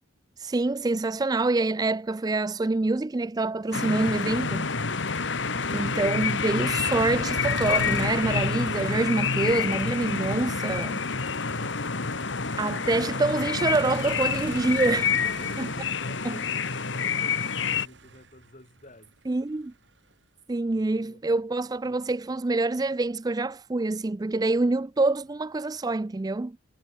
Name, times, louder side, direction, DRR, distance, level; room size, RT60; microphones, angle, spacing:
voice 1, 0.4-4.7 5.7-11.0 12.6-15.1 16.2-16.3 19.3-19.7 20.5-26.6, right 2 dB, 20° right, 0.4 m, -26 dB
sound 1, 3.7-17.9, left 5 dB, 60° left, 1.5 m, -28 dB
Motor vehicle (road), 4.0-20.1, right 2 dB, 60° right, 4.6 m, -44 dB
voice 2, 15.1-19.1 20.7-21.2, left 1 dB, 35° left, 5.8 m, -50 dB
head